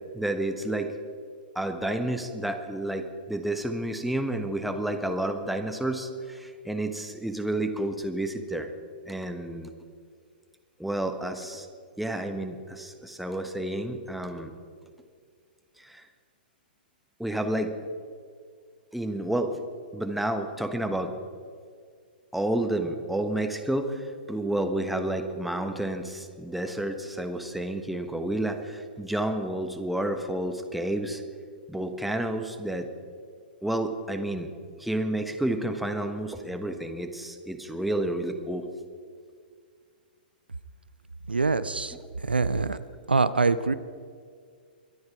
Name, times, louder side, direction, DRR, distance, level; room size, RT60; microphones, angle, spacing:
voice 1, 0.1-0.9 1.5-8.7 9.0-9.7 10.8-11.7 12.0-14.5 15.8-16.1 17.2-17.7 18.9-19.6 19.9-21.1 22.3-31.2 31.7-32.9 33.6-34.5 34.8-38.7, right 1 dB, ahead, 6 dB, 1.2 m, -30 dB
voice 2, 41.3-42.8 43.1-43.8, right 4 dB, 85° right, 15 dB, 0.6 m, -25 dB
23.5 x 9.6 x 4.8 m, 2.1 s
figure-of-eight pair, 115°, 5 cm